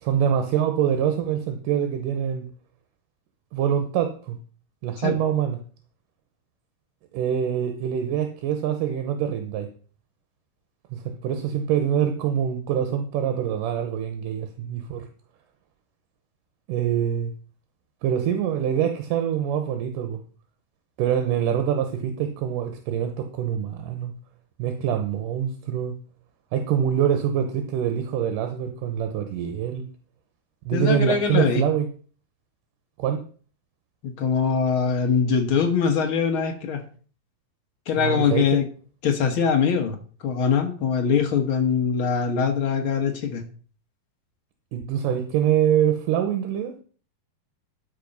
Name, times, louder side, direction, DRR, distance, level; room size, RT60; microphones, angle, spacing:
voice 1, 0.0-2.5 3.5-4.4 4.8-5.6 7.1-9.7 10.9-15.1 16.7-17.3 18.0-20.2 21.0-24.1 24.6-26.0 26.5-29.9 30.7-31.9 33.0-33.2 38.0-38.6 44.7-46.7, right 9 dB, 70° right, 7 dB, 2.3 m, -25 dB
voice 2, 30.7-31.6 34.0-36.8 37.9-38.7 39.0-40.0 40.2-43.4, left 6 dB, 80° left, 4 dB, 1.1 m, -22 dB
12.5 x 5.4 x 5.3 m, 0.41 s
omnidirectional pair, 4.3 m